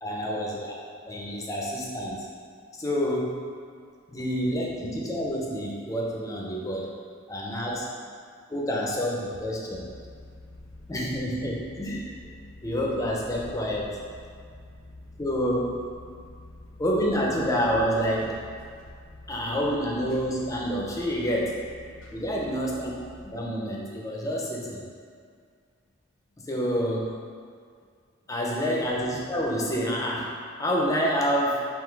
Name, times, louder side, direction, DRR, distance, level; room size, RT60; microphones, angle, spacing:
voice 1, 0.0-0.8 1.1-2.3 2.7-3.4 4.1-6.9 7.3-7.9 8.5-9.9 10.9-12.1 12.6-14.0 15.2-15.7 16.8-18.5 19.3-21.6 22.1-22.9 23.2-24.9 26.4-27.2 28.3-30.3 30.6-31.7, equal, 15° left, -2 dB, 0.5 m, -28 dB
sound 1, 9.7-23.3, left 1 dB, 80° left, 0.8 m, -47 dB
3.7 x 2.7 x 4.5 m, 2.1 s
head